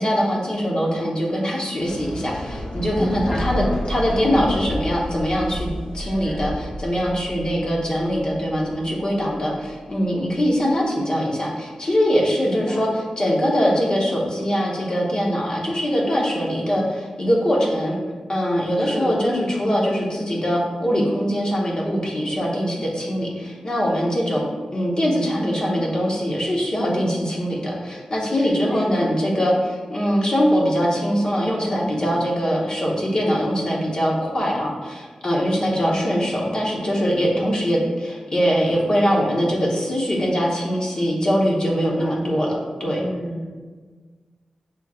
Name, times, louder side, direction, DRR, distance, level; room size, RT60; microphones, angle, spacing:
voice 1, 0.0-18.0 18.3-43.0, equal, 40° left, -2 dB, 0.9 m, -22 dB
sound 1, 1.8-9.8, equal, 85° left, 1.1 m, -32 dB
voice 2, 2.9-3.9 6.0-6.4 12.4-13.0 18.8-19.2 28.3-29.1 35.6-36.0 41.7-42.2 43.0-43.5, equal, 10° left, -2 dB, 0.5 m, -31 dB
6.0 x 3.1 x 2.4 m, 1.4 s
wide cardioid pair, 85°, 2 cm